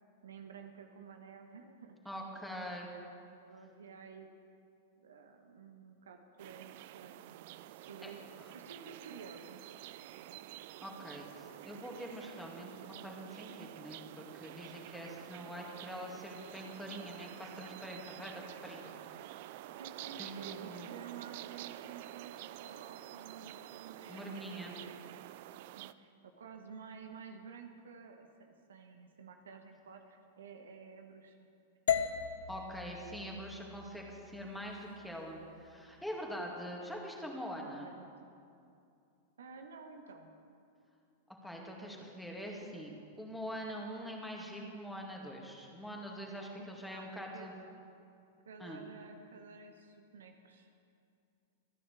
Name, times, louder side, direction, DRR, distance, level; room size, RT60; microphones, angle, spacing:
voice 1, 0.2-2.0 2.4-2.8 3.3-4.3 5.0-9.7 10.2-10.4 19.8-24.4 24.8-25.3 25.8-31.5 32.0-32.1 37.6-38.1 39.4-40.4 46.6-47.5 48.4-50.8, right 5 dB, 70° right, 5 dB, 1.1 m, -52 dB
voice 2, 2.0-2.9 8.0-8.1 10.8-19.5 20.2-20.9 24.1-24.7 32.5-37.9 41.4-47.5 48.6-48.8, equal, ahead, -1 dB, 2.3 m, -44 dB
sound 1, 6.4-25.9, right 14 dB, 55° right, 0.4 m, -49 dB
sound 2, 31.9-36.0, left 8 dB, 65° left, 0.7 m, -38 dB
27.5 x 9.7 x 3.5 m, 2.5 s
figure-of-eight pair, 95°, 0 cm